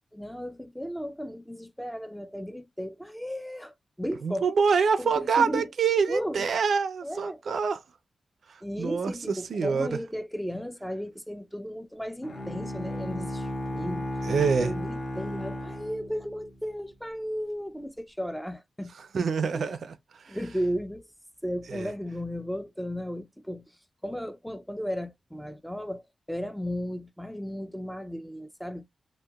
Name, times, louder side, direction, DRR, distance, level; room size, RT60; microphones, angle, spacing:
voice 1, 0.1-4.5 5.0-5.6 6.1-6.5 7.0-7.4 8.6-14.3 14.6-18.9 19.5-19.7 20.3-21.1 21.4-23.6 24.0-26.0 26.3-28.8, equal, ahead, 0.4 m, -35 dB
voice 2, 4.2-7.8 8.5-9.1 9.5-10.0 14.2-14.7 19.0-19.9 20.2-20.4 21.7-21.9, right 5 dB, 70° right, 0.4 m, -26 dB
Bowed string instrument, 12.2-16.7, left 1 dB, 45° left, 0.7 m, -34 dB
2.8 x 2.1 x 2.2 m
wide cardioid pair, 125°, 0 cm